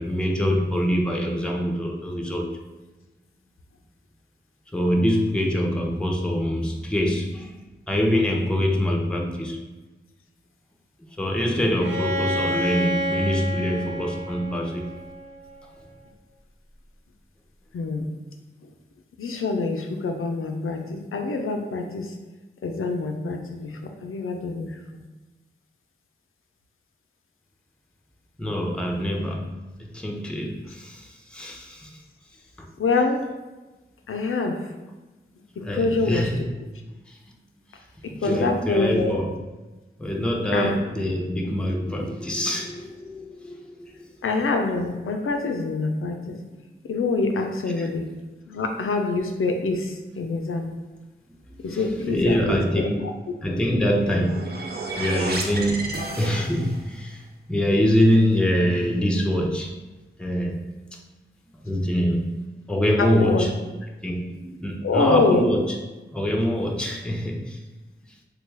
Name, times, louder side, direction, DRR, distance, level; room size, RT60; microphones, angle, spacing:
voice 1, 0.0-2.5 4.7-7.6 7.9-9.7 11.2-14.8 28.4-29.5 29.8-31.9 32.6-32.7 35.6-36.5 37.1-37.2 38.2-39.3 40.0-43.9 47.8-47.9 51.6-53.0 53.4-54.7 54.9-57.2 57.5-59.7 60.2-60.6 61.6-62.4 62.7-63.5 64.0-65.8 66.1-67.6, equal, 5° left, 0 dB, 0.6 m, -24 dB
Bowed string instrument, 11.8-15.6, equal, 85° right, 1.0 m, -29 dB
voice 2, 17.7-18.1 19.2-22.1 22.6-25.0 32.8-33.2 34.1-34.7 35.6-36.3 38.0-39.1 40.5-40.8 44.2-46.4 46.8-48.0 48.5-50.7 51.6-52.9 63.0-63.5 64.8-65.4, left 3 dB, 85° left, 4 dB, 0.4 m, -25 dB
sound 1, 53.9-56.9, right 3 dB, 50° right, 0.6 m, -32 dB
3.3 x 2.2 x 3.2 m, 1.2 s
cardioid pair, 40°, 21 cm